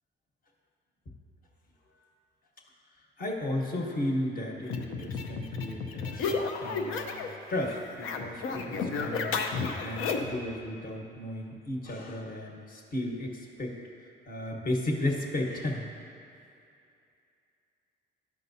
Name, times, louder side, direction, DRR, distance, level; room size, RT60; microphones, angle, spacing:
voice 1, 3.2-13.7 14.3-15.9, left 1 dB, 45° left, 0 dB, 1.2 m, -34 dB
sound 1, 4.7-7.4 7.6-10.4, left 4 dB, 85° left, 0.6 m, -32 dB
12.0 x 5.5 x 2.8 m, 2.5 s
cardioid pair, 90°, 20 cm